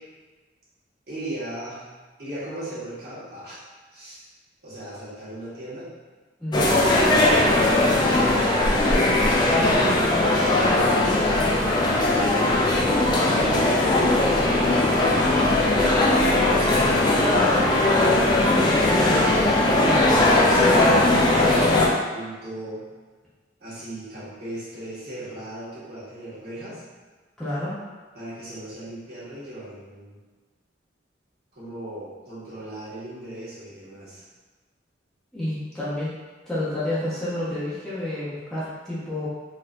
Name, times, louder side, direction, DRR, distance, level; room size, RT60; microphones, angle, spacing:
voice 1, 1.1-1.8 2.2-3.6 3.9-4.2 4.6-5.9 8.8-10.1 12.0-18.1 20.1-22.8 23.6-26.8 28.1-30.2 31.5-34.2, right 1 dB, 60° right, -10 dB, 1.5 m, -37 dB
voice 2, 6.4-7.2 19.7-20.1 27.4-27.7 35.3-36.1 36.5-39.3, left 1 dB, 5° left, -11 dB, 0.8 m, -30 dB
sound 1, 6.5-21.9, left 2 dB, 25° left, 0.4 m, -19 dB
4.0 x 2.8 x 2.5 m, 1.4 s
head